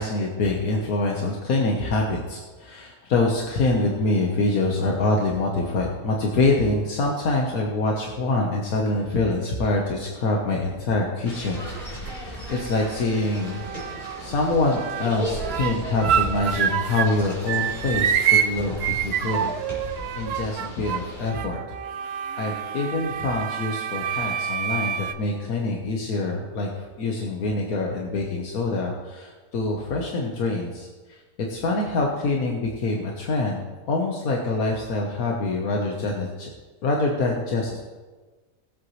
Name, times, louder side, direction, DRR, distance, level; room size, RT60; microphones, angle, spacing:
voice 1, 0.0-13.6 14.2-19.5 19.9-21.6 22.0-31.2 31.5-36.5 36.8-37.8, left 2 dB, 80° left, 0 dB, 1.6 m, -25 dB
newjersey OC boardwalk mono, 11.3-21.3, equal, 30° left, 3.8 m, -36 dB
sound 1, 11.6-12.1 12.5-14.3 14.6-17.2 17.5-25.1, right 9 dB, 65° right, 0.6 m, -27 dB
19.5 x 7.9 x 3.2 m, 1.3 s
omnidirectional pair, 1.5 m